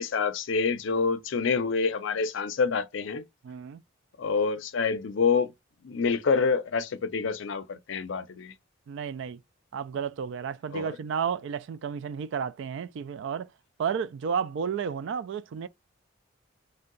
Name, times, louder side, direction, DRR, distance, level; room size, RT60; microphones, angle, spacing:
voice 1, 0.0-3.2 4.2-5.5 5.8-8.5 10.7-11.0, left 5 dB, 65° left, 0.5 m, -27 dB
voice 2, 3.4-3.8 8.9-9.4 9.7-13.5 13.8-15.7, right 7 dB, 65° right, 0.3 m, -32 dB
2.6 x 2.1 x 3.8 m
head